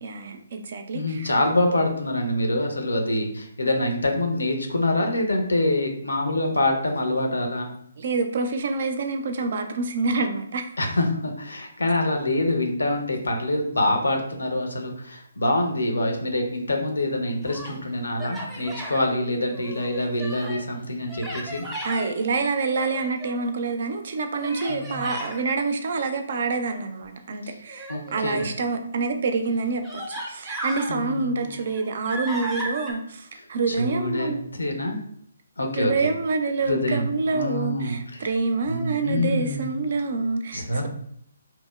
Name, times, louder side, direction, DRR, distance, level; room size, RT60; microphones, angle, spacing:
voice 1, 0.0-1.3 8.0-10.7 21.8-34.4 35.8-40.9, right 4 dB, 55° right, 6 dB, 0.3 m, -27 dB
voice 2, 0.9-7.7 10.8-21.6 24.7-25.1 27.9-28.5 30.9-31.5 33.3-35.0 35.6-36.1 36.7-38.3 38.7-39.7 40.5-40.9, left 1 dB, 80° left, 3 dB, 0.6 m, -25 dB
Human voice, 17.2-17.8 18.2-19.0 19.5-20.7 21.1-22.1 22.7-23.5 24.4-25.4 27.7-28.6 29.3-29.4 29.8-30.9 31.4-32.9, right 1 dB, 5° right, 0.6 m, -35 dB
2.8 x 2.0 x 2.2 m, 0.68 s
figure-of-eight pair, 140°, 0 cm